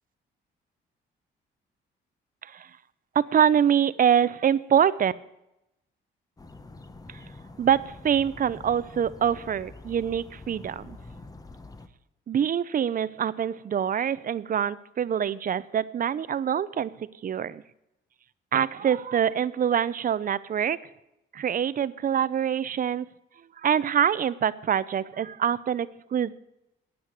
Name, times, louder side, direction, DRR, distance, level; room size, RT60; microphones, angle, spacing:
voice 1, 3.1-5.1 7.1-7.2 7.6-11.0 12.3-17.6 18.5-20.8 21.3-23.1 23.6-26.3, right 8 dB, 45° right, 17 dB, 0.6 m, -25 dB
sound 1, 6.4-11.9, left 2 dB, 20° left, 1.0 m, -46 dB
9.7 x 9.4 x 8.0 m, 0.88 s
cardioid pair, 90°, 20 cm